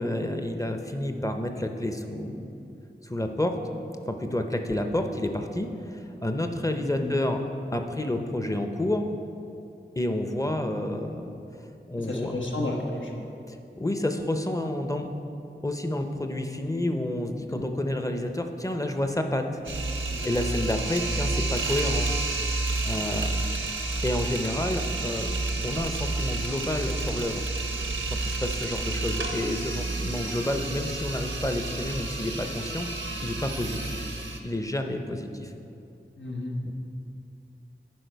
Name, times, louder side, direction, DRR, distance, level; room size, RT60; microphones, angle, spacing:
voice 1, 0.0-2.5 3.0-3.6 4.1-7.4 7.7-9.1 10.0-11.4 11.9-12.3 13.5-15.1 15.6-19.6 20.2-22.1 22.8-23.4 24.0-25.3 25.6-27.5 28.1-32.9 33.2-34.1 34.4-35.5 36.6-36.7, left 1 dB, 15° left, 5 dB, 0.6 m, -29 dB
voice 2, 12.0-13.2 17.5-17.7 20.1-20.3 36.2-36.6, left 2 dB, 80° left, -1 dB, 1.0 m, -32 dB
sound 1, 19.6-34.4, right 2 dB, 85° right, 0.7 m, -30 dB
10.5 x 4.9 x 4.6 m, 2.7 s
wide cardioid pair, 50°, 19 cm